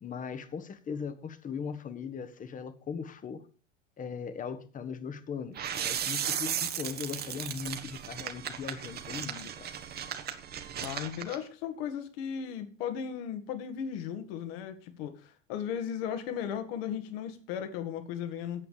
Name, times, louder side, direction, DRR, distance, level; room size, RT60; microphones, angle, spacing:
voice 1, 0.0-3.5 4.0-9.7, left 6 dB, 20° left, 1.4 m, -39 dB
sound 1, 5.5-11.4, right 9 dB, 25° right, 1.3 m, -36 dB
voice 2, 10.8-18.6, left 8 dB, 50° left, 2.1 m, -36 dB
8.8 x 8.0 x 6.8 m
figure-of-eight pair, 85°, 37 cm